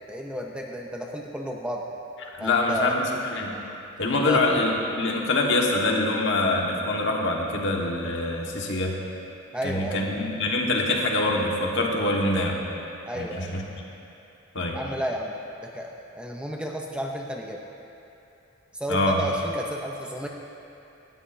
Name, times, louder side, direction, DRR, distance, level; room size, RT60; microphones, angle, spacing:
voice 1, 0.1-1.9 2.4-3.0 4.2-4.4 9.5-10.0 13.0-13.6 14.7-15.4 15.6-17.6 18.7-20.3, equal, 5° right, 0 dB, 0.6 m, -32 dB
voice 2, 2.4-3.6 4.0-8.9 9.6-12.6 13.1-13.6 14.5-14.8 18.9-19.2, left 2 dB, 60° left, -1 dB, 1.5 m, -24 dB
18.5 x 13.0 x 2.7 m, 2.8 s
head